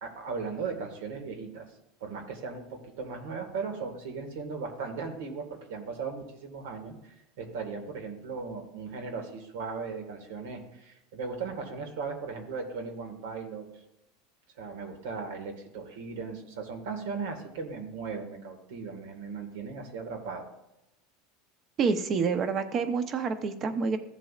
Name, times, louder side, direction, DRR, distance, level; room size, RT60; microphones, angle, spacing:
voice 1, 0.0-1.7 2.0-13.7 14.6-20.5, right 5 dB, 85° right, 4 dB, 1.9 m, -37 dB
voice 2, 21.8-24.0, right 5 dB, 35° right, 9 dB, 0.8 m, -28 dB
15.0 x 7.5 x 2.5 m, 0.90 s
supercardioid pair, 150°, 0 cm